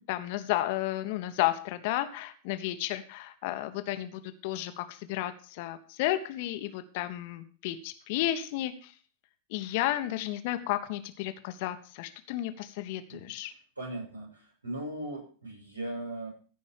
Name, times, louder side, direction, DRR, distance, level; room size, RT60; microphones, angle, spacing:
voice 1, 0.1-8.9 9.5-13.5, left 14 dB, 50° left, 10 dB, 1.1 m, -32 dB
voice 2, 13.8-16.3, right 1 dB, 80° right, -2 dB, 5.8 m, -38 dB
15.0 x 5.4 x 6.6 m, 0.40 s
figure-of-eight pair, 90°, 0 cm